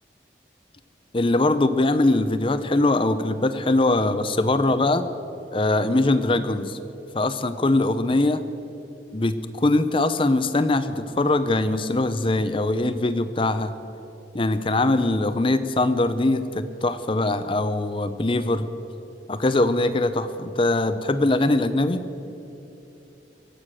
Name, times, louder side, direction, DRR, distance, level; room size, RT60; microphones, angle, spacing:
voice 1, 1.1-5.0 5.5-6.8 7.1-8.4 9.1-13.7 14.3-18.7 19.3-22.0, left 2 dB, 30° left, 11 dB, 0.6 m, -22 dB
23.0 x 8.3 x 6.3 m, 2.9 s
head